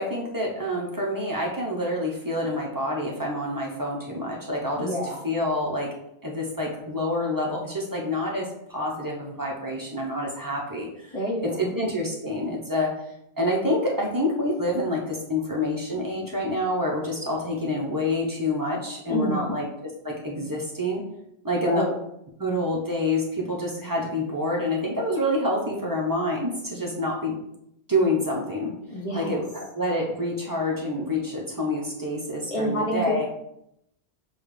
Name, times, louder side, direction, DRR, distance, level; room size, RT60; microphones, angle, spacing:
voice 1, 0.0-4.9 5.2-5.9 6.2-11.2 11.4-12.9 13.4-19.7 20.0-21.0 21.4-21.9 22.4-27.3 27.9-28.7 29.1-33.3, left 1 dB, 20° right, -2 dB, 0.7 m, -27 dB
voice 2, 4.8-5.2 11.1-11.7 19.1-19.5 21.5-21.9 28.9-29.4 32.5-33.3, equal, 35° left, -2 dB, 1.0 m, -28 dB
6.9 x 2.3 x 3.2 m, 0.78 s
omnidirectional pair, 1.1 m